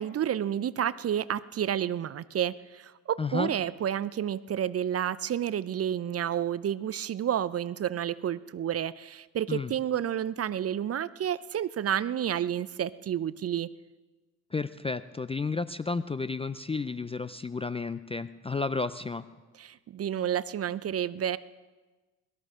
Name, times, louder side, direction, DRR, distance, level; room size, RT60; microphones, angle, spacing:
voice 1, 0.0-13.7 19.6-21.4, right 10 dB, 35° right, 18 dB, 0.6 m, -30 dB
voice 2, 3.2-3.5 9.5-9.7 14.5-19.2, left 4 dB, 15° left, 14 dB, 0.4 m, -32 dB
22.5 x 13.5 x 3.7 m, 1.2 s
hypercardioid pair, 55°, 45 cm